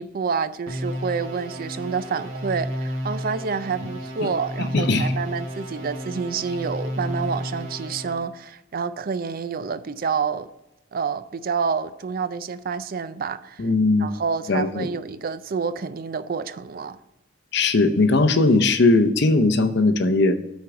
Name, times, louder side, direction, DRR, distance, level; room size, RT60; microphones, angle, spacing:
voice 1, 0.0-10.5 10.9-13.6 14.0-17.0, right 5 dB, 45° right, 0.4 m, -28 dB
sound 1, 0.7-8.2, equal, 75° right, 1.5 m, -32 dB
voice 2, 4.7-5.1 13.6-14.1 14.5-14.9 17.5-20.4, left 2 dB, 60° left, 0.7 m, -19 dB
8.3 x 4.5 x 6.1 m
head